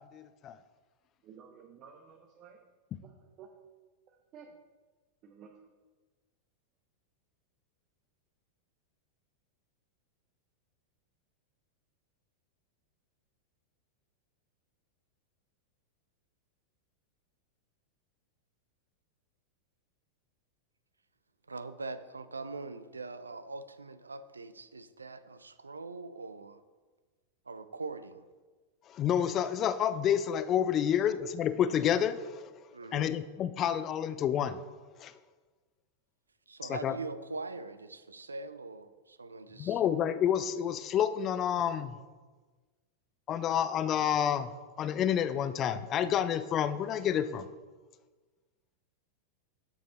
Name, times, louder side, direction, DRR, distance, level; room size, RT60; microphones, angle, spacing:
voice 1, 0.1-0.6 28.9-32.5 32.9-34.6 35.0-35.1 36.7-37.0 39.6-42.0 43.3-44.5 44.8-47.5, left 9 dB, 30° left, 13 dB, 0.4 m, -29 dB
voice 2, 1.2-2.6 3.0-3.1 3.4-3.5 4.1-4.5 5.2-5.6, right 7 dB, 35° right, 4 dB, 0.7 m, -53 dB
voice 3, 21.5-26.6 27.5-28.2 32.7-33.1 36.5-39.8, right 3 dB, 75° right, 13 dB, 0.4 m, -42 dB
9.1 x 7.1 x 3.0 m, 1.3 s
figure-of-eight pair, 90°, 0 cm